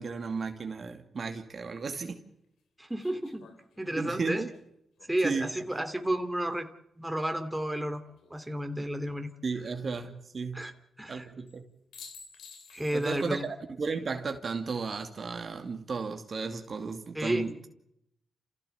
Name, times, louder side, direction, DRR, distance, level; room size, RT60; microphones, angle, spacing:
voice 1, 0.0-2.2 4.0-4.5 5.2-5.5 9.4-10.7 11.1-11.6 12.9-17.5, right 4 dB, 55° right, 5 dB, 2.5 m, -34 dB
sound 1, 1.5-1.6 3.0-6.2 8.0-8.7 11.5-11.6 11.9-13.5 13.8-13.9 16.2-16.7, left 5 dB, 80° left, 3.1 m, -53 dB
voice 2, 2.8-3.5 3.8-4.5 5.1-6.7 7.0-8.0 8.3-9.3 10.5-10.7 11.0-11.3 12.7-13.5 17.1-17.5, right 1 dB, 10° right, 6 dB, 3.0 m, -31 dB
29.0 x 16.0 x 7.1 m, 0.80 s
supercardioid pair, 55°, 0 cm